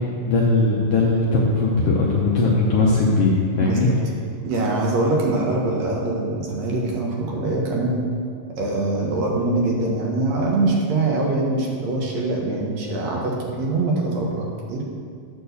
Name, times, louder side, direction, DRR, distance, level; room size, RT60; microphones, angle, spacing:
voice 1, 0.2-3.9, left 3 dB, 70° left, -4 dB, 1.6 m, -19 dB
voice 2, 3.5-4.0 4.4-8.0 8.6-14.8, right 2 dB, 70° right, -1 dB, 2.3 m, -23 dB
8.5 x 4.4 x 6.7 m, 2.2 s
omnidirectional pair, 3.3 m